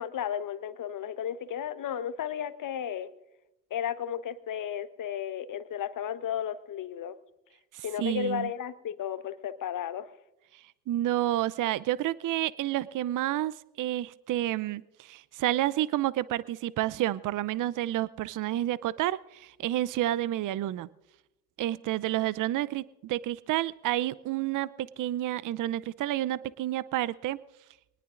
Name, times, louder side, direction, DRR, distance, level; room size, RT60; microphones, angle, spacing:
voice 1, 0.0-3.1 3.7-7.2 7.8-10.1, left 9 dB, 45° left, 13 dB, 1.1 m, -34 dB
voice 2, 7.7-8.5 10.5-20.9 21.6-27.4, right 14 dB, 45° right, 19 dB, 0.6 m, -30 dB
24.0 x 19.5 x 2.5 m, 0.93 s
hypercardioid pair, 50°, 44 cm